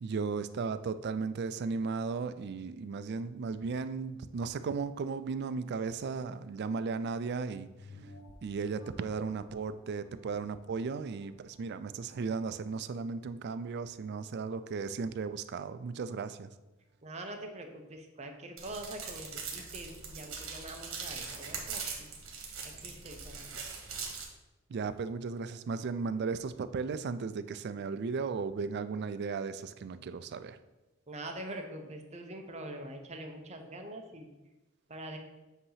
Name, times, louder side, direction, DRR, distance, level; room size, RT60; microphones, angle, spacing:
voice 1, 0.0-7.7 8.0-8.1 8.4-16.5 24.7-30.6, right 5 dB, 50° right, 12 dB, 0.3 m, -35 dB
sound 1, 7.7-12.7 13.2-13.3, left 1 dB, 85° left, 0.8 m, -55 dB
voice 2, 17.0-22.1 22.6-23.5 29.9-30.2 31.1-34.3 34.9-35.2, right 1 dB, 30° right, 4 dB, 0.7 m, -44 dB
sound 2, 18.6-24.2, right 5 dB, 70° right, 1.5 m, -41 dB
8.0 x 2.8 x 5.6 m, 1.1 s
head